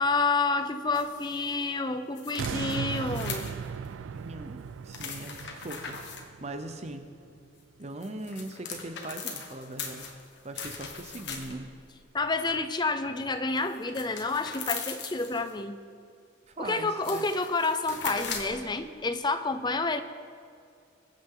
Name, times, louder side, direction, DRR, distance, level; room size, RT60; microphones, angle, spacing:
voice 1, 0.0-3.5 12.1-15.8 16.6-20.0, left 3 dB, 20° left, 10 dB, 0.6 m, -29 dB
sound 1, 0.9-1.5 2.2-3.9 4.9-6.2 7.8-11.7 13.6-15.5 16.5-16.6 16.9-18.6, left 5 dB, 60° left, 1.5 m, -39 dB
sound 2, 2.4-7.5 7.9-8.0, right 6 dB, 80° right, 0.4 m, -37 dB
voice 2, 3.8-6.0 6.4-7.1 7.8-10.1 10.4-11.7 16.5-17.3 18.2-18.3, right 2 dB, 35° right, 7 dB, 0.8 m, -40 dB
22.0 x 8.6 x 3.9 m, 2.4 s
head